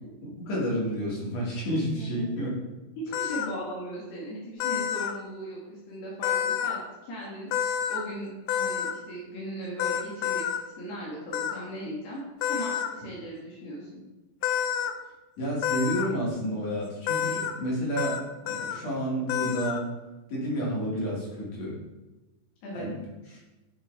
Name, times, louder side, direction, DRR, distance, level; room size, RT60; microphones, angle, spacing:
voice 1, 0.4-2.6 15.4-18.2 18.4-19.9 20.3-21.8 22.7-23.0, equal, 45° left, -5 dB, 3.1 m, -30 dB
voice 2, 3.0-12.2 12.5-14.0 22.6-22.9, equal, 70° left, -5 dB, 3.4 m, -38 dB
sound 1, 3.1-3.5 4.6-5.1 6.2-6.8 7.5-8.0 8.5-8.9 9.8-10.6 11.3-11.5 12.4-12.9 14.4-14.9 15.6-16.1 17.1-17.5 18.0-18.2 18.5-18.8 19.3-19.8, left 9 dB, 90° left, 2.2 m, -28 dB
10.5 x 4.6 x 4.7 m, 1.1 s
omnidirectional pair, 5.0 m